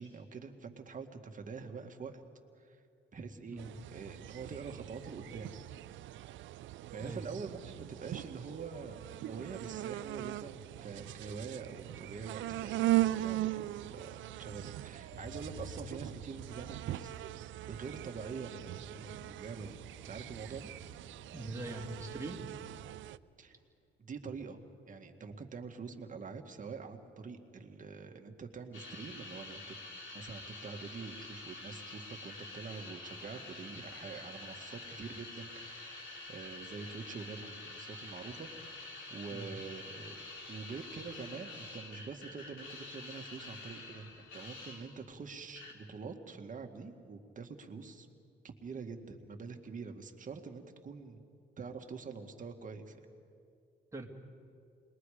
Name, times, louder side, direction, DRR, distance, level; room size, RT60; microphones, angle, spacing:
voice 1, 0.0-2.2 2.6-2.8 3.1-3.6 3.9-5.5 6.9-17.1 17.7-19.8 20.1-20.7 23.4-23.6 24.0-24.6 24.9-29.8 30.1-40.2 40.5-48.1 48.4-51.2 51.6-53.0, right 5 dB, 40° right, 5 dB, 1.8 m, -45 dB
sound 1, 3.6-23.2, right 15 dB, 75° right, 0.5 m, -39 dB
Motor vehicle (road), 7.9-8.2 8.6-23.0 23.4-23.8, equal, 60° left, 3.9 m, -56 dB
voice 2, 21.3-22.4 39.3-39.5 53.9-54.1, right 2 dB, 15° right, 1 dB, 2.6 m, -42 dB
sound 2, 28.7-45.1 45.6-45.7, left 2 dB, 75° left, 3.5 m, -48 dB
29.5 x 21.5 x 5.0 m, 2.4 s
cardioid pair, 90°, 20 cm